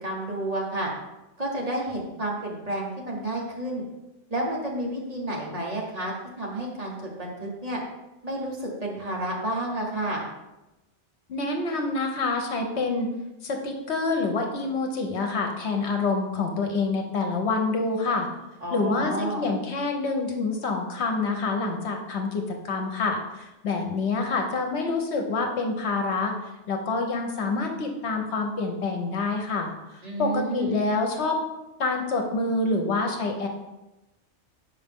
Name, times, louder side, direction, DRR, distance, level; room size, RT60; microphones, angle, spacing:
voice 1, 0.0-0.9 1.4-3.8 4.3-7.8 8.2-10.2 18.6-19.5 30.0-30.9, right 1 dB, 35° right, -3 dB, 1.2 m, -30 dB
voice 2, 11.3-13.1 13.4-18.3 18.7-31.4 31.8-33.5, left 3 dB, 65° left, 3 dB, 1.1 m, -27 dB
6.3 x 4.8 x 3.6 m, 1.0 s
omnidirectional pair, 1.2 m